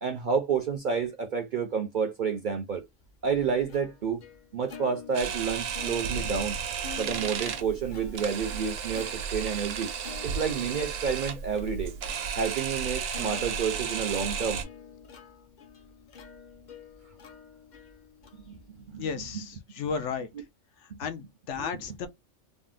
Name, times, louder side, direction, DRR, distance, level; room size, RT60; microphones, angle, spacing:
voice 1, 0.0-2.8 3.2-4.2 4.5-6.6 7.0-9.9 10.2-11.9 12.3-14.7 18.5-19.2 20.9-21.0 21.6-21.7, right 6 dB, 55° right, 0.5 m, -30 dB
Plucked string instrument, 2.8-19.5, left 7 dB, 50° left, 0.6 m, -49 dB
Camera, 5.1-14.6, right 7 dB, 75° right, 1.0 m, -33 dB
voice 2, 19.0-20.3 21.0-22.1, left 6 dB, 70° left, 0.9 m, -34 dB
3.7 x 2.0 x 2.5 m
omnidirectional pair, 1.3 m